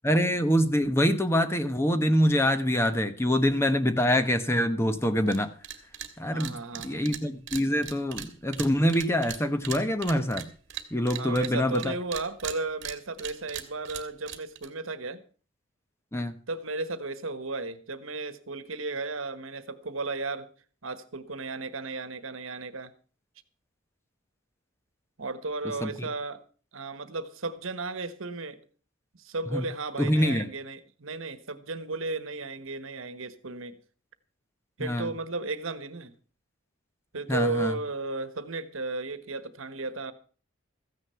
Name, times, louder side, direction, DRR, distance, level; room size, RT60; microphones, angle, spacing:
voice 1, 0.0-5.5 6.2-6.5 6.8-10.5 10.9-11.9 16.1-16.3 25.8-25.9 29.5-29.6 30.0-30.5 34.8-35.1 37.3-37.8, equal, 10° left, 10 dB, 0.9 m, -25 dB
sound 1, 5.3-5.4 5.6-6.1 6.4-11.9 12.1-14.7, right 10 dB, 60° right, 1.7 m, -38 dB
voice 2, 6.3-7.0 11.1-15.2 16.5-20.5 20.8-22.9 25.2-26.4 26.7-28.6 29.1-33.8 34.8-36.1 37.1-40.1, right 3 dB, 75° right, 13 dB, 1.3 m, -34 dB
14.5 x 9.7 x 5.7 m, 0.40 s
head